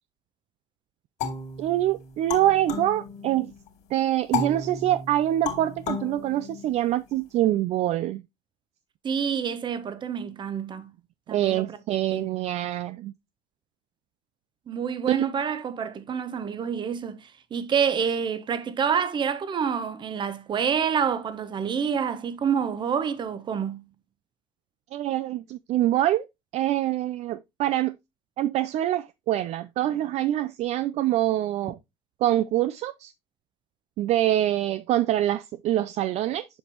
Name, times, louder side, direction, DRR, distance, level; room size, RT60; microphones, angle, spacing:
sound 1, 1.2-3.7 4.3-7.1, left 5 dB, 65° left, 2.4 m, -34 dB
voice 1, 1.6-3.5 3.9-8.2 11.3-13.1 15.1-15.3 24.9-26.3 26.5-28.0 28.4-31.8 32.2-33.1 34.0-36.5, right 13 dB, 55° right, 0.4 m, -25 dB
voice 2, 9.0-10.9 11.3-11.8 12.1-12.3 14.7-23.8, right 7 dB, 35° right, 0.9 m, -27 dB
7.2 x 5.4 x 2.9 m
cardioid pair, 115°, 14 cm